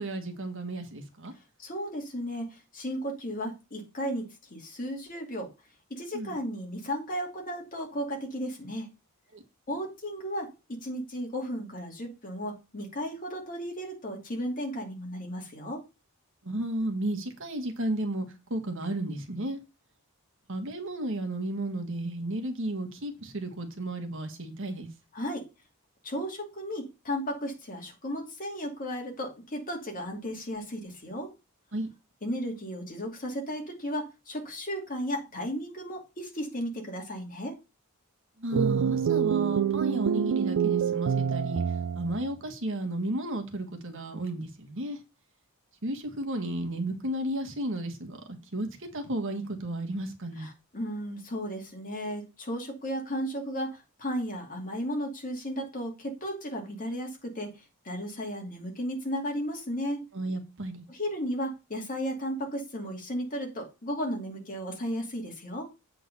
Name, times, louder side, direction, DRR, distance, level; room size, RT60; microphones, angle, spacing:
voice 1, 0.0-1.3 6.1-6.4 9.3-9.4 16.4-19.6 20.5-24.9 31.7-31.9 38.4-41.6 41.9-45.0 45.8-50.5 60.1-60.8, right 1 dB, 60° right, 1.6 m, -33 dB
voice 2, 1.6-5.5 5.9-8.9 9.7-15.8 25.1-25.5 26.0-31.3 32.2-37.5 50.4-57.5 57.8-60.0 60.9-65.7, equal, 40° left, 2.6 m, -34 dB
sound 1, 38.5-42.2, right 7 dB, 80° right, 0.3 m, -26 dB
8.2 x 3.8 x 6.7 m
head